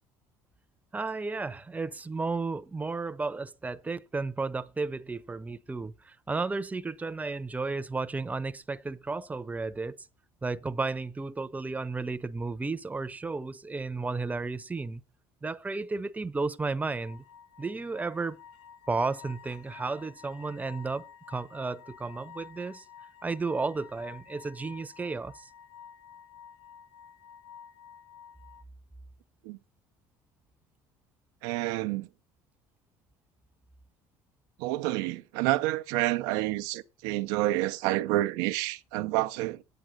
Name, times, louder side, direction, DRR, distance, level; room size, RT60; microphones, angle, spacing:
voice 1, 0.9-10.0 10.4-15.0 15.4-17.2 17.6-18.4 18.9-22.8 23.2-25.5, right 3 dB, 15° right, 0.7 m, -33 dB
sound 1, 17.0-28.6, left 8 dB, 80° left, 0.9 m, -51 dB
voice 2, 31.4-32.1 34.6-39.6, right 17 dB, 85° right, 0.5 m, -29 dB
9.2 x 7.9 x 6.3 m
supercardioid pair, 95°, 10 cm